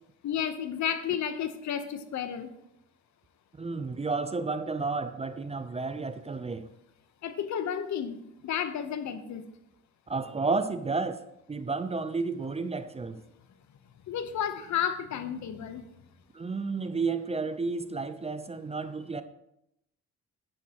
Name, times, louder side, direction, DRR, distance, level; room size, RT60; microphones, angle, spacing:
voice 1, 0.2-2.5 7.2-8.2 8.4-9.4 14.1-15.8, left 8 dB, 70° left, 1.0 m, -32 dB
voice 2, 3.6-6.7 10.1-11.2 11.5-13.2 16.3-19.2, right 4 dB, 20° right, 0.5 m, -31 dB
10.0 x 9.7 x 3.0 m
cardioid pair, 90°, 30 cm